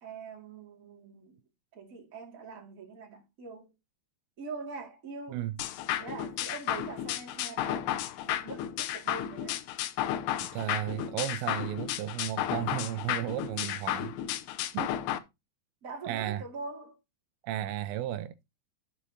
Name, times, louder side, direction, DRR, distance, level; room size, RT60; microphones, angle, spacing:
voice 1, 0.0-1.4 1.7-3.7 4.4-5.4 6.0-7.9 8.2-9.6 15.8-17.0, right 4 dB, 30° right, 1.6 m, -43 dB
sound 1, 5.6-15.2, left 12 dB, 80° left, 2.6 m, -33 dB
voice 2, 10.4-14.1 14.7-14.9 16.0-16.4 17.4-18.3, right 12 dB, 85° right, 2.7 m, -34 dB
14.0 x 5.1 x 2.8 m
omnidirectional pair, 5.2 m